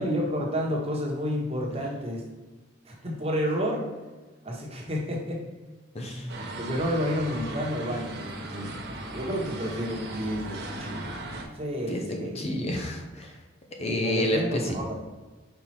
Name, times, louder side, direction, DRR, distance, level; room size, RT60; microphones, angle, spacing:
voice 1, 0.0-2.2 2.8-3.9 4.4-5.4 6.6-8.7 9.1-11.1 11.5-12.4 13.8-14.9, equal, 30° right, -2 dB, 1.3 m, -30 dB
voice 2, 5.9-6.3 11.9-13.3 13.8-14.7, left 1 dB, 30° left, 2 dB, 0.7 m, -29 dB
sound 1, 6.3-11.4, right 2 dB, 55° right, 1.0 m, -37 dB
5.3 x 4.5 x 4.3 m, 1.2 s
head